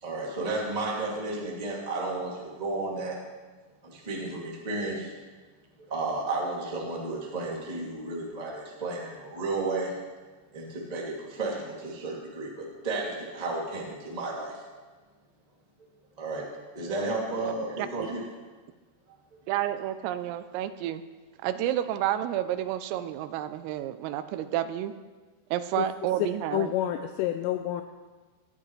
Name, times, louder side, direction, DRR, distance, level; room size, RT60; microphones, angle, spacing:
voice 1, 0.0-3.2 3.8-5.1 5.9-9.9 10.5-14.6 16.2-16.4 16.7-18.2, right 2 dB, 35° right, -4 dB, 0.6 m, -33 dB
voice 2, 17.4-18.1 19.5-21.0 21.4-24.9 25.5-26.7, right 12 dB, 85° right, 11 dB, 3.3 m, -30 dB
voice 3, 26.5-27.8, left 12 dB, 85° left, 7 dB, 3.0 m, -28 dB
18.0 x 13.5 x 3.3 m, 1.3 s
omnidirectional pair, 5.8 m